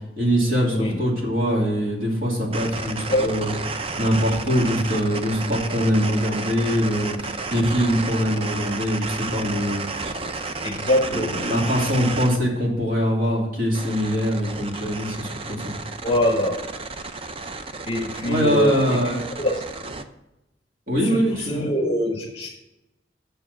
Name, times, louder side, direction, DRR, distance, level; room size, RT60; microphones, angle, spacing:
voice 1, 0.2-3.5 4.0-10.5 11.1-15.7 18.2-19.2 20.9-21.7, equal, 50° right, -3 dB, 2.6 m, -23 dB
sound 1, 2.5-12.4 13.7-20.0, right 3 dB, 30° right, 0.5 m, -32 dB
voice 2, 3.1-3.5 10.6-11.5 16.0-16.7 17.8-19.0 19.4-19.6 21.0-22.5, equal, 35° left, -1 dB, 1.0 m, -23 dB
7.2 x 6.7 x 6.5 m, 0.94 s
head